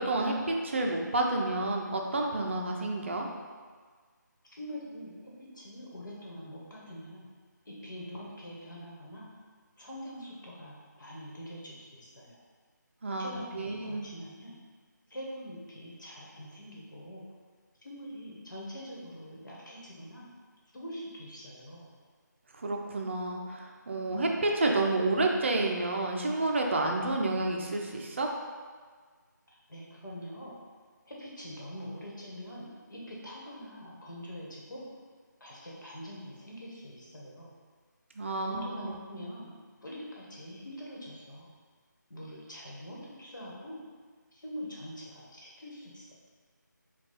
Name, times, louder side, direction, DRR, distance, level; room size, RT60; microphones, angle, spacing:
voice 1, 0.0-3.3 13.0-14.1 22.5-28.3 38.2-38.9, right 2 dB, 40° right, 1 dB, 0.5 m, -30 dB
voice 2, 4.6-7.3 7.6-9.3 9.8-12.4 13.1-14.5 15.1-17.2 17.8-20.3 20.7-21.9 29.7-30.5 31.0-34.9 35.4-37.5 38.4-39.5 39.8-41.5 42.1-43.8 44.3-46.1, equal, 75° left, -5 dB, 1.3 m, -44 dB
4.6 x 2.3 x 4.1 m, 1.6 s
figure-of-eight pair, 160°, 10 cm